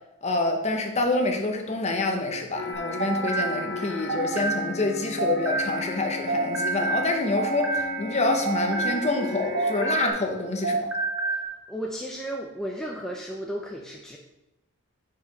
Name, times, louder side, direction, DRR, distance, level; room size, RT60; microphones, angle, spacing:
voice 1, 0.2-10.9, left 2 dB, 30° left, 3 dB, 0.8 m, -27 dB
sound 1, 2.5-10.1, left 2 dB, 50° left, 1.0 m, -35 dB
sound 2, 2.7-6.0 6.3-10.4 10.6-11.5, right 3 dB, 70° right, 1.0 m, -29 dB
voice 2, 11.4-14.2, right 1 dB, ahead, -1 dB, 0.5 m, -34 dB
5.0 x 4.9 x 5.1 m, 0.95 s
head